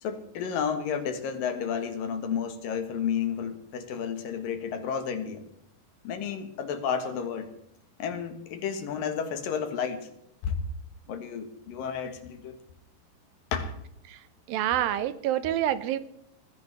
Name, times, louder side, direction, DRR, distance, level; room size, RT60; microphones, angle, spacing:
voice 1, 0.0-5.4 6.0-7.5 8.0-10.1 10.4-10.6 11.1-12.6 13.5-13.7, left 7 dB, 70° left, 7 dB, 3.1 m, -31 dB
voice 2, 14.5-16.0, right 12 dB, 80° right, 13 dB, 2.4 m, -27 dB
21.0 x 15.5 x 3.4 m, 0.76 s
omnidirectional pair, 4.3 m